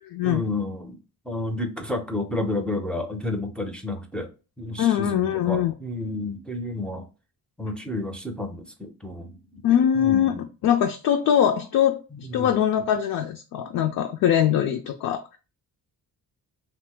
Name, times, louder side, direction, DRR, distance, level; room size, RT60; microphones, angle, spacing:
voice 1, 0.2-1.0 1.3-4.3 4.6-7.0 7.6-9.6 9.9-10.4 12.1-12.6, left 2 dB, 5° left, 0.4 m, -31 dB
voice 2, 4.8-5.7 9.6-15.4, left 10 dB, 65° left, 0.5 m, -22 dB
3.0 x 2.0 x 3.3 m
cardioid pair, 115°, 36 cm